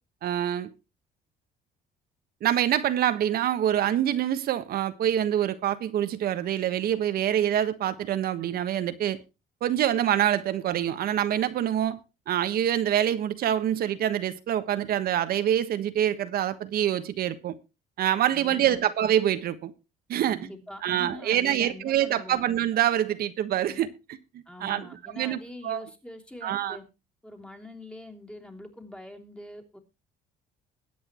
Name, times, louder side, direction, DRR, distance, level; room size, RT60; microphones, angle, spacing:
voice 1, 0.2-0.7 2.4-9.2 9.6-12.0 12.3-17.5 18.0-19.7 20.1-20.5 20.8-23.9 24.3-25.9 26.4-26.8, right 11 dB, 65° right, 1.3 m, -26 dB
voice 2, 18.3-18.9 20.2-22.5 23.6-23.8 24.5-26.8 27.2-29.8, left 1 dB, 5° left, 3.2 m, -44 dB
21.5 x 8.6 x 3.0 m
cardioid pair, 110°, 17 cm